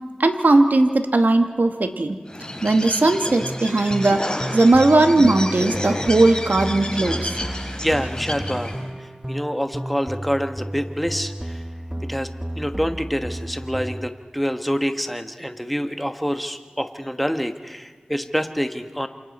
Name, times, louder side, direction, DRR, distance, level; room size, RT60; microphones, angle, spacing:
voice 1, 0.2-2.2 2.6-7.4, right 2 dB, 75° right, 6 dB, 1.3 m, -18 dB
Bird, 2.3-8.9, left 1 dB, 25° left, 4.1 m, -30 dB
sound 1, 3.4-14.1, right 1 dB, 15° right, 0.9 m, -33 dB
voice 2, 7.5-8.7 9.0-11.6 12.1-12.3 12.5-19.1, equal, ahead, 7 dB, 1.3 m, -26 dB
28.5 x 27.0 x 4.3 m, 1.5 s
wide cardioid pair, 45°, 3 cm